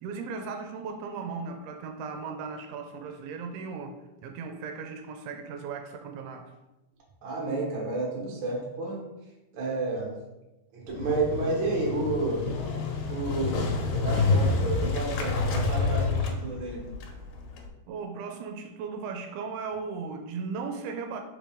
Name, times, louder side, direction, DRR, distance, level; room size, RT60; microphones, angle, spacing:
voice 1, 0.0-4.0 4.2-6.5 17.9-21.2, right 5 dB, 85° right, 5 dB, 2.5 m, -37 dB
voice 2, 7.2-9.0 9.5-10.1 10.7-12.5 13.1-16.8, right 3 dB, 55° right, -3 dB, 1.4 m, -30 dB
Motorcycle, 10.9-17.7, left 4 dB, 75° left, 2.1 m, -28 dB
5.1 x 5.1 x 3.7 m, 0.99 s
omnidirectional pair, 4.6 m